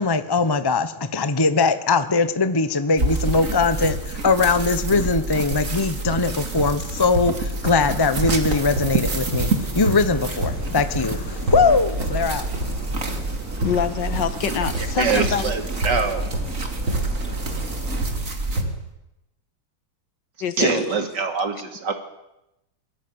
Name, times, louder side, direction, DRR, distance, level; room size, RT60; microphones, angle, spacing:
voice 1, 0.0-12.4, left 4 dB, 30° left, 12 dB, 0.4 m, -21 dB
sound 1, 3.0-18.6, right 2 dB, 40° right, 2.8 m, -28 dB
sound 2, 3.3-4.0 4.4-4.6 4.9-5.2 5.5-5.8 6.1-7.9 8.2-8.4 8.8-9.1 9.3-9.6 9.9-10.2 10.4-10.7 10.9-11.2 11.5-12.2 12.5-12.8 13.1-13.3 13.6-13.9 14.1-17.2 17.4-18.3 18.6-18.9, right 2 dB, 75° right, 5.9 m, -29 dB
sound 3, 7.7-18.1, equal, 5° right, 3.4 m, -38 dB
voice 2, 13.6-15.5 20.4-20.9, left 8 dB, 65° left, 13 dB, 1.9 m, -25 dB
voice 3, 15.0-16.3 20.6-21.9, right 4 dB, 55° right, 6 dB, 3.1 m, -24 dB
22.0 x 16.5 x 9.6 m, 0.89 s
omnidirectional pair, 2.2 m